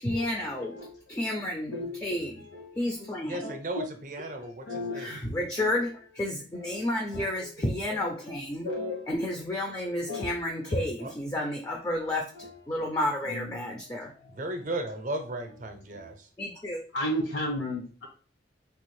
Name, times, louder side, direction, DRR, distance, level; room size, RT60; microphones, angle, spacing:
voice 1, 0.0-1.8 2.0-2.4 2.8-3.5 4.9-8.7 9.1-14.1 16.4-16.8, left 1 dB, 20° left, 0 dB, 0.4 m, -31 dB
voice 2, 0.6-1.0 1.7-2.1 2.4-3.1 3.4-3.9 4.2-4.3 4.7-5.2 5.6-5.8 6.5-7.5 7.9-8.0 8.6-9.1 9.8-10.3 10.7-10.9 12.3-12.5 13.3-13.7 14.2-14.4 15.9-16.1 16.9-18.1, left 1 dB, 75° left, -1 dB, 1.5 m, -35 dB
voice 3, 3.3-5.2 11.0-11.1 14.3-16.3, right 1 dB, 45° right, 5 dB, 0.5 m, -35 dB
3.4 x 2.4 x 3.1 m, 0.39 s
head